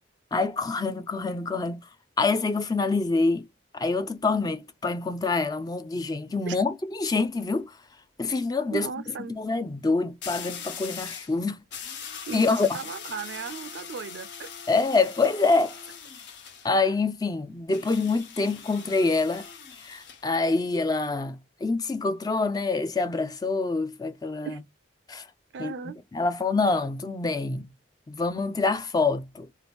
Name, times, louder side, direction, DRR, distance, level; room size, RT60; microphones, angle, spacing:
voice 1, 0.3-1.9 2.2-3.5 3.7-7.8 8.2-8.9 9.3-11.6 12.3-12.8 14.7-15.8 16.6-19.5 19.8-24.6 25.1-25.3 25.6-27.7 28.1-29.5, left 3 dB, 20° left, 0.3 m, -26 dB
sound 1, 7.1-7.4 10.2-11.3 11.7-16.7 17.7-20.2, left 7 dB, 60° left, 0.9 m, -41 dB
voice 2, 8.7-9.4 12.3-14.5 24.4-24.6 25.5-26.0, right 6 dB, 60° right, 0.3 m, -36 dB
2.8 x 2.4 x 3.4 m
head